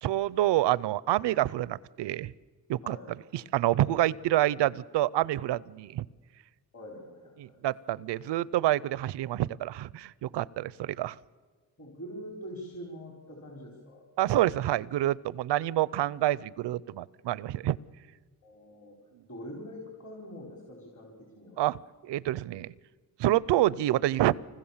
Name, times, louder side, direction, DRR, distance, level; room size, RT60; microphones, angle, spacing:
voice 1, 0.0-2.3 2.7-3.0 3.3-6.0 7.4-11.2 14.2-17.8 21.6-21.8 22.0-22.7 23.2-24.3, right 14 dB, 85° right, 22 dB, 0.6 m, -27 dB
voice 2, 2.8-3.1 6.7-7.6 10.5-10.6 11.8-14.0 18.4-19.0 19.3-21.6, equal, 45° left, 1 dB, 4.4 m, -44 dB
25.0 x 20.5 x 7.3 m, 1.5 s
cardioid pair, 70°, 41 cm